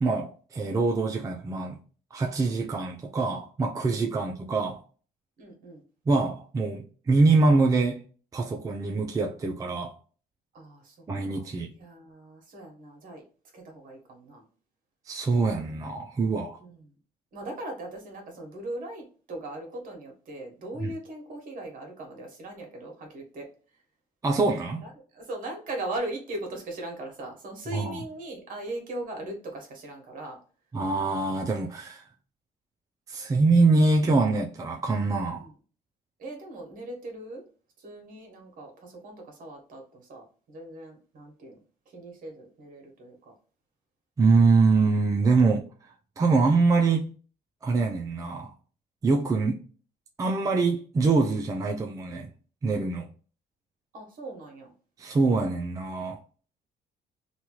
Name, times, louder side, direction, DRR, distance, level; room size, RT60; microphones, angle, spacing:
voice 1, 0.0-1.8 2.1-4.8 6.1-8.0 8.3-9.9 11.1-11.7 15.1-16.6 20.8-20.9 24.2-24.8 27.7-28.0 30.7-32.0 33.1-35.5 44.2-45.6 46.2-47.1 47.6-48.5 49.0-49.6 50.2-52.3 52.6-53.1 55.0-56.2, right 3 dB, 20° right, 0.4 m, -24 dB
voice 2, 3.9-4.3 5.4-5.8 10.5-11.0 11.2-13.2 13.5-14.4 16.6-17.0 17.3-23.5 23.7-23.8 24.8-30.4 35.3-35.6 36.2-37.4 37.8-41.6 41.9-43.3 53.9-54.7, right 1 dB, 55° right, 1.2 m, -39 dB
3.0 x 2.3 x 2.9 m
cardioid pair, 110°, 17 cm